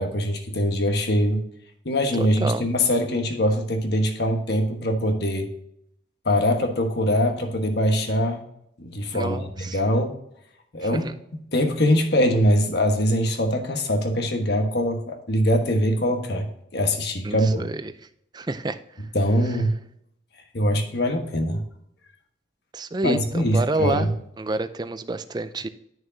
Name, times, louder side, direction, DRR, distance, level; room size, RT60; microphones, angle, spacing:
voice 1, 0.0-1.4 1.8-5.5 6.2-8.4 8.8-10.1 10.7-11.1 11.5-16.5 16.7-17.7 19.1-19.7 20.5-21.6 23.0-24.1, equal, 55° left, 5 dB, 1.3 m, -22 dB
voice 2, 2.2-2.7 9.1-9.8 10.8-11.1 17.2-17.9 18.3-18.8 22.7-24.1 24.4-25.7, right 2 dB, 20° right, 12 dB, 0.4 m, -28 dB
11.0 x 6.3 x 2.7 m, 0.74 s
head